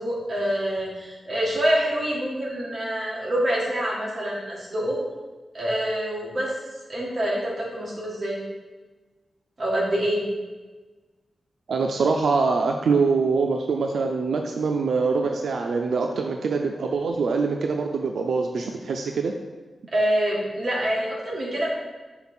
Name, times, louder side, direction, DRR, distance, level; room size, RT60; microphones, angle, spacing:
voice 1, 0.0-5.0 5.5-6.5 6.9-8.4 9.6-10.3 19.9-21.7, right 1 dB, 40° right, -5 dB, 1.6 m, -26 dB
voice 2, 11.7-19.3, right 4 dB, 90° right, 3 dB, 0.4 m, -24 dB
5.8 x 3.8 x 4.3 m, 1.3 s
wide cardioid pair, 170°, 0 cm